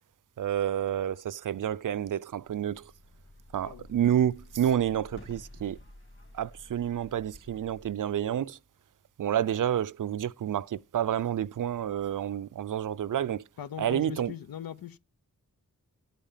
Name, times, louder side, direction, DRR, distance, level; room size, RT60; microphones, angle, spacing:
voice 1, 0.4-2.9 3.5-5.8 6.3-8.6 9.2-13.4 13.8-14.3, right 10 dB, 65° right, 0.5 m, -29 dB
sound 1, 2.4-8.0, left 1 dB, 35° left, 2.9 m, -51 dB
voice 2, 13.6-15.0, left 10 dB, 80° left, 0.7 m, -40 dB
10.0 x 5.1 x 7.2 m
cardioid pair, 40°, 34 cm